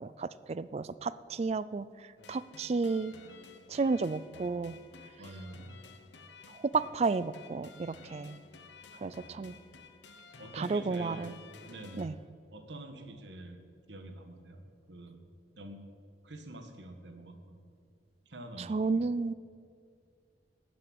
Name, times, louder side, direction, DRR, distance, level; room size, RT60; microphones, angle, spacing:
voice 1, 0.0-1.9 2.3-3.1 3.7-4.8 6.7-8.4 9.0-9.5 10.5-11.3 12.0-12.1 18.7-19.3, right 4 dB, 35° right, 17 dB, 0.3 m, -32 dB
sound 1, 2.2-12.1, left 4 dB, 75° left, 1.1 m, -53 dB
voice 2, 5.2-5.8 10.4-11.4 11.7-12.1 12.5-13.6 13.9-14.6 14.9-15.2 15.6-15.8 16.2-17.6 18.2-19.0, right 1 dB, 75° right, 6 dB, 1.5 m, -46 dB
12.5 x 7.8 x 8.7 m, 2.3 s
head